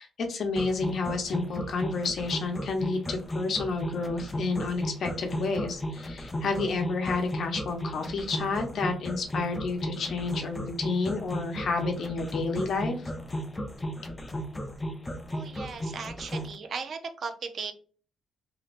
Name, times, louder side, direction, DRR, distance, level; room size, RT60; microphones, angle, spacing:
voice 1, 0.0-13.1, left 3 dB, 60° left, 4 dB, 0.8 m, -30 dB
sound 1, 0.6-16.5, equal, 15° left, 0.5 m, -35 dB
voice 2, 15.3-17.7, right 5 dB, 55° right, 7 dB, 0.5 m, -37 dB
3.1 x 2.6 x 2.5 m, 0.40 s
cardioid pair, 90°, 0 cm